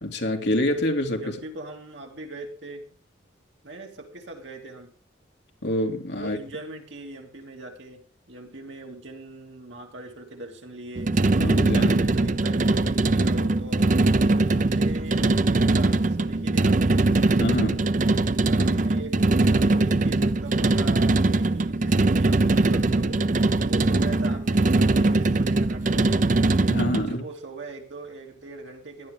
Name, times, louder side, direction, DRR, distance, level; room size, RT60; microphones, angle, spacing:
voice 1, 0.0-1.3 5.6-6.4 11.4-11.9 17.4-17.8 26.7-27.2, left 1 dB, 60° left, 3 dB, 2.8 m, -26 dB
voice 2, 1.2-2.9 3.6-4.9 6.2-8.0 8.3-11.1 11.7-14.0 14.3-17.1 18.5-23.2 23.6-26.3 27.0-29.1, right 2 dB, 70° right, 2 dB, 3.1 m, -40 dB
sound 1, 11.0-27.1, right 2 dB, 40° right, 0.6 m, -21 dB
17.0 x 11.5 x 3.8 m, 0.41 s
head